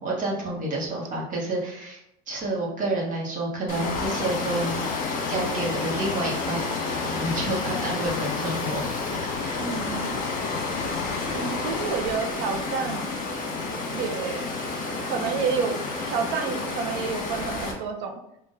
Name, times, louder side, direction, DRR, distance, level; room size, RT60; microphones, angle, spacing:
voice 1, 0.0-2.0 2.3-5.0 5.3-6.6 7.0-8.9 9.4-9.6, right 2 dB, 40° right, -3 dB, 1.2 m, -29 dB
Water, 3.7-17.7, left 3 dB, 40° left, 1.2 m, -30 dB
sound 1, 3.8-11.9, left 7 dB, 75° left, 0.5 m, -35 dB
voice 2, 9.6-10.2 11.3-13.2 13.9-14.5 15.0-15.8 16.1-18.1, right 6 dB, 60° right, 4 dB, 0.7 m, -29 dB
3.8 x 2.5 x 3.8 m, 0.79 s
supercardioid pair, 105°, 20 cm